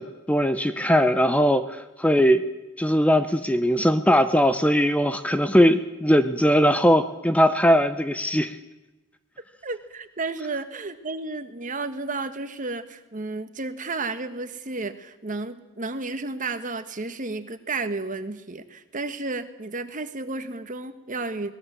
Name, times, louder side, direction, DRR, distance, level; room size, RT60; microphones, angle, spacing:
voice 1, 0.0-2.4 2.8-8.6, equal, 5° left, 10 dB, 0.7 m, -20 dB
voice 2, 9.6-21.5, right 3 dB, 35° right, 10 dB, 1.4 m, -32 dB
21.5 x 20.0 x 7.6 m, 1.1 s
head